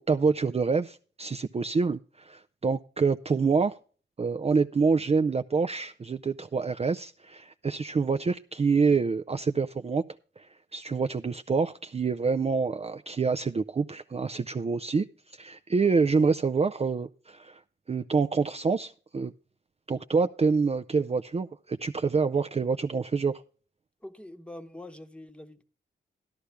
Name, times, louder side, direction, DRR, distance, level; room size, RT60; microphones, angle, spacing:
voice 1, 0.0-3.8 4.2-10.0 10.4-15.1 15.3-17.6 17.9-19.3 19.9-23.4, right 4 dB, 30° right, 0.5 m, -26 dB
voice 2, 24.0-25.6, left 1 dB, 5° left, 1.1 m, -45 dB
13.0 x 11.0 x 3.4 m
wide cardioid pair, 85°, 20 cm